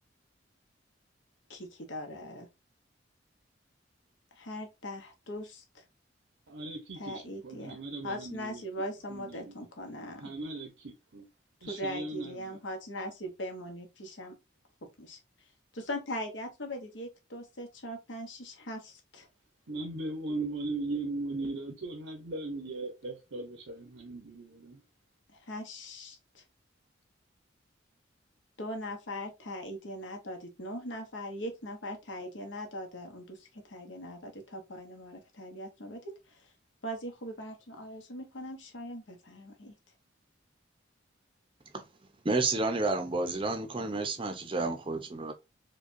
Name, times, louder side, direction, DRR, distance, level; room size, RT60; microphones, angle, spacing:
voice 1, 1.5-2.5 4.4-5.8 7.0-7.8 8.0-10.3 11.6-14.4 14.8-15.2 15.7-19.3 25.5-26.4 28.6-36.5 36.8-39.7, equal, 75° left, 1.0 m, -40 dB
voice 2, 6.5-8.6 9.1-9.5 10.2-11.3 11.6-12.6 19.7-24.8, right 2 dB, 85° right, 0.8 m, -38 dB
voice 3, 42.2-45.3, right 3 dB, 25° right, 0.6 m, -30 dB
4.9 x 2.3 x 2.6 m
head